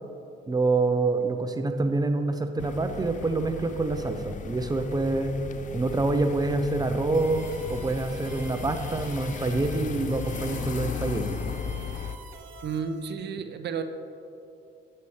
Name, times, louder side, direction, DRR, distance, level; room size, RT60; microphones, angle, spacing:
voice 1, 0.5-5.4 5.7-11.4, right 3 dB, 20° right, 7 dB, 0.6 m, -26 dB
sound 1, 2.6-12.2, left 7 dB, 40° left, 0.4 m, -36 dB
sound 2, 7.1-13.1, right 5 dB, 85° right, 0.9 m, -48 dB
sound 3, 7.6-12.4, left 2 dB, 65° left, 2.0 m, -57 dB
voice 2, 12.6-13.8, right 6 dB, 60° right, 8 dB, 0.6 m, -32 dB
8.5 x 7.7 x 3.2 m, 2.8 s
cardioid pair, 90°, 20 cm